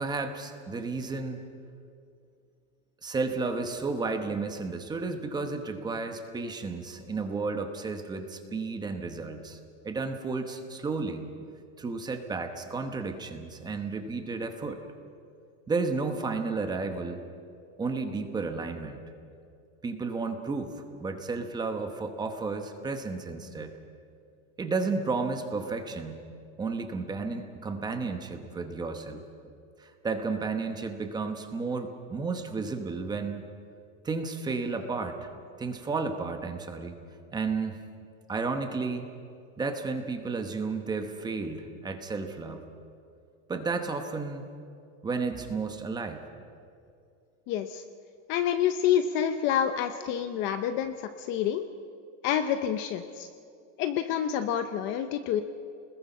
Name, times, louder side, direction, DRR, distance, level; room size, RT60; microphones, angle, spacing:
voice 1, 0.0-1.4 3.0-9.6 9.8-11.2 11.8-14.8 15.7-17.2 17.8-19.0 19.8-20.7 21.0-23.8 24.6-26.3 26.6-29.2 29.8-33.4 34.0-35.3 35.6-37.0 37.3-37.8 38.3-39.0 39.6-42.6 43.5-44.5 45.0-46.2, right 4 dB, 10° right, 6 dB, 1.0 m, -32 dB
voice 2, 47.5-47.8 48.3-51.6 52.2-53.3 53.8-55.4, left 9 dB, 30° left, 9 dB, 0.6 m, -28 dB
29.0 x 20.5 x 5.5 m, 2.4 s
supercardioid pair, 175°, 38 cm